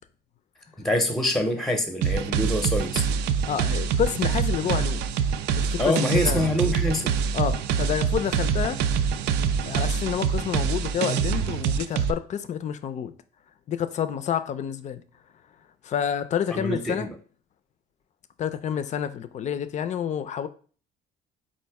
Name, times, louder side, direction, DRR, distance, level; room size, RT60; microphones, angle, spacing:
voice 1, 0.8-3.2 5.8-7.2 16.5-17.1, left 1 dB, ahead, 0.7 m, -25 dB
sound 1, 2.0-12.1, right 7 dB, 80° right, 0.4 m, -25 dB
voice 2, 3.5-5.1 5.5-6.7 7.3-8.8 9.6-13.1 13.7-15.0 15.8-17.1 18.4-20.5, left 9 dB, 45° left, 0.5 m, -29 dB
4.2 x 2.5 x 4.7 m
cardioid pair, 110°, 17 cm